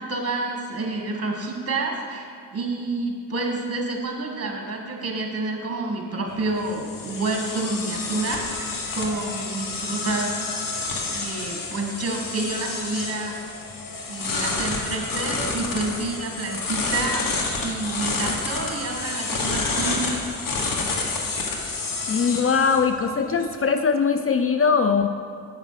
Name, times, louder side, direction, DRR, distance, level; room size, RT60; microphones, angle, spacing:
voice 1, 0.0-10.4 10.7-10.8 11.1-13.4 14.1-17.2 17.6-20.1, right 2 dB, 40° right, 1 dB, 1.8 m, -29 dB
sound 1, 6.3-23.5, left 3 dB, 60° left, 1.4 m, -29 dB
voice 2, 22.1-25.1, left 5 dB, 40° left, 8 dB, 0.4 m, -21 dB
8.4 x 5.9 x 5.7 m, 2.4 s
cardioid pair, 75°, 37 cm